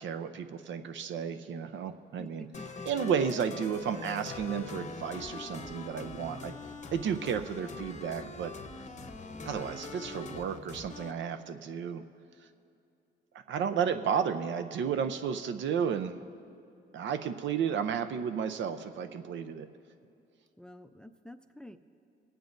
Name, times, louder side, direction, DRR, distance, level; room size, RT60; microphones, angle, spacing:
voice 1, 0.0-2.5 2.9-6.5 6.9-8.5 9.5-12.0 13.5-16.2 16.9-19.7, right 7 dB, 70° right, 9 dB, 0.6 m, -32 dB
voice 2, 2.2-3.2 9.3-9.7 13.6-14.1 20.6-21.8, left 1 dB, 5° left, 10 dB, 0.4 m, -48 dB
sound 1, 2.5-11.1, left 4 dB, 35° left, 0.8 m, -43 dB
26.5 x 9.0 x 2.6 m, 2.6 s
cardioid pair, 90°, 20 cm